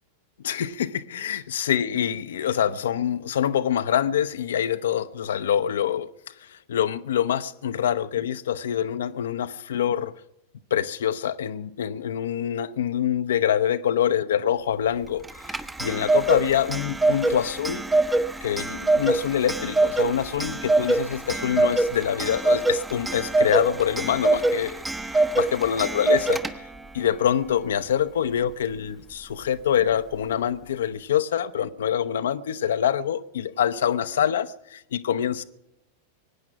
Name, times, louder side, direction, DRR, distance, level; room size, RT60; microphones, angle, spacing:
voice 1, 0.4-6.1 6.4-10.1 10.7-17.8 18.4-24.8 25.1-26.5 26.9-35.4, left 9 dB, 60° left, 0.7 m, -25 dB
Clock, 15.2-26.9, right 2 dB, 10° right, 0.9 m, -24 dB
22.5 x 9.7 x 5.9 m
figure-of-eight pair, 90°, 0 cm